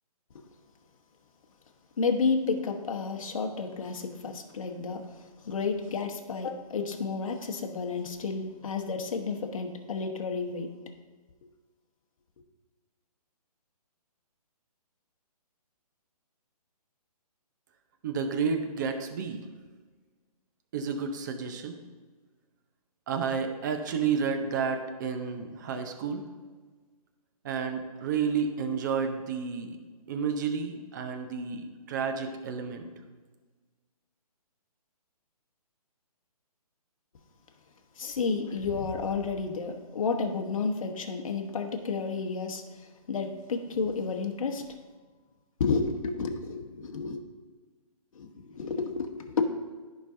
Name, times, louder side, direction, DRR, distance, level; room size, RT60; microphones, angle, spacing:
voice 1, 2.0-10.7 38.0-44.7 45.6-47.2 48.1-49.4, left 4 dB, 55° left, 3 dB, 1.2 m, -31 dB
voice 2, 18.0-19.4 20.7-21.8 23.1-26.2 27.4-29.8 30.1-32.9, right 6 dB, 30° right, 6 dB, 0.7 m, -31 dB
14.0 x 5.1 x 2.6 m, 1.4 s
hypercardioid pair, 160°, 20 cm